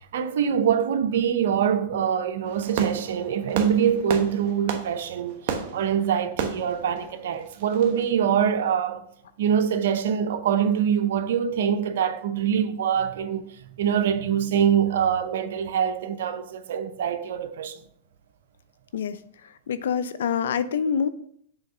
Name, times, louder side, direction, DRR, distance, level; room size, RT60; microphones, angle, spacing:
voice 1, 0.0-9.0 9.4-17.8, right 8 dB, 75° right, 0.7 m, -24 dB
Fireworks, 2.4-8.1, right 6 dB, 55° right, 1.0 m, -33 dB
voice 2, 19.4-21.1, left 7 dB, 80° left, 0.5 m, -26 dB
7.0 x 3.6 x 5.5 m
hypercardioid pair, 120°, 0 cm